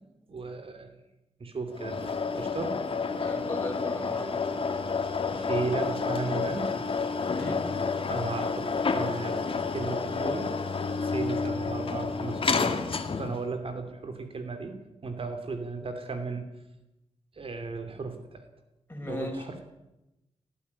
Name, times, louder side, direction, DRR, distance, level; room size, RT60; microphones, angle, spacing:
voice 1, 0.3-0.9 1.4-2.8 5.3-6.7 8.1-9.4 9.7-10.5 10.9-12.7 13.2-14.8 15.0-16.5 17.4-18.4 19.0-19.6, right 4 dB, 55° right, 7 dB, 3.0 m, -35 dB
sound 1, 1.7-13.5, left 4 dB, 55° left, 2.0 m, -30 dB
voice 2, 3.1-4.4 7.2-7.7 18.9-19.5, left 1 dB, 20° left, 2 dB, 6.5 m, -37 dB
18.5 x 14.5 x 9.8 m, 0.94 s
wide cardioid pair, 90°, 11 cm